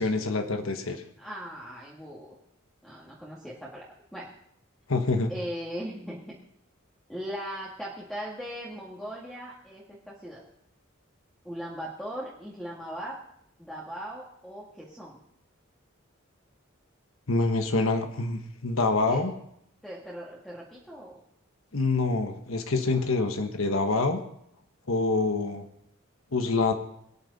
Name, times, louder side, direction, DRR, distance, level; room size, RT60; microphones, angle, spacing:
voice 1, 0.0-1.0 4.9-5.3 17.3-19.3 21.7-24.2 24.9-25.7 26.3-26.7, left 3 dB, 85° left, 6 dB, 1.3 m, -26 dB
voice 2, 1.2-2.4 2.8-3.8 4.1-4.3 5.3-6.4 7.1-10.4 11.4-13.2 13.6-15.2 19.1-19.3 19.8-21.2 22.9-23.0, equal, 5° left, -5 dB, 2.0 m, -39 dB
23.0 x 9.5 x 4.1 m, 0.72 s
head